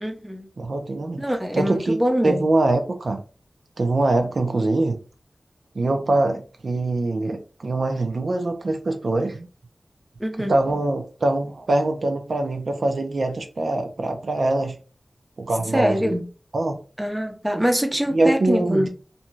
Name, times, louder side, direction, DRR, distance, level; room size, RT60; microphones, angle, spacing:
voice 1, 0.0-0.5 1.2-2.4 10.2-10.6 15.7-16.2 17.0-18.9, equal, 10° right, 0.5 m, -24 dB
voice 2, 0.6-1.2 1.5-2.0 2.2-3.2 3.8-5.0 5.8-9.5 10.4-14.8 15.4-16.1 16.5-16.8 18.1-18.9, right 2 dB, 75° right, 0.5 m, -23 dB
2.6 x 2.2 x 3.0 m
wide cardioid pair, 90°, 0 cm